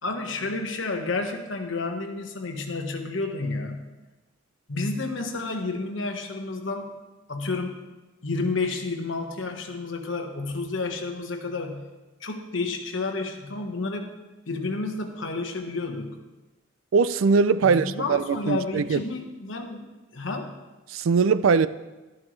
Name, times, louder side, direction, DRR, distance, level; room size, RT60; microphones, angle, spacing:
voice 1, 0.0-3.8 4.7-6.9 7.3-7.8 8.2-11.9 12.2-14.1 14.5-16.2 17.6-20.6, left 3 dB, 70° left, 1.3 m, -30 dB
voice 2, 16.9-19.0 20.9-21.7, right 5 dB, 90° right, 0.4 m, -21 dB
12.0 x 11.5 x 3.2 m
head